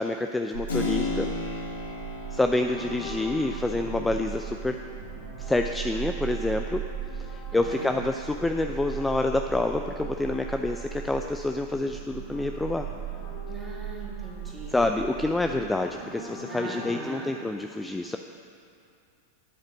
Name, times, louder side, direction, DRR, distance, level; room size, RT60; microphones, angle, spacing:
voice 1, 0.0-1.3 2.3-4.8 5.4-6.8 7.3-12.9 14.7-18.2, left 2 dB, 10° left, 5 dB, 0.4 m, -27 dB
sound 1, 0.5-15.7, right 9 dB, 65° right, 2.5 m, -38 dB
Keyboard (musical), 0.7-9.2, left 4 dB, 85° left, 1.6 m, -37 dB
sound 2, 2.6-11.2 11.5-17.1, left 2 dB, 55° left, 2.3 m, -45 dB
voice 2, 7.5-8.0 13.5-14.8 16.5-17.4, right 2 dB, 15° right, -3 dB, 2.5 m, -41 dB
9.0 x 7.9 x 6.3 m, 2.5 s
hypercardioid pair, 95°, 0 cm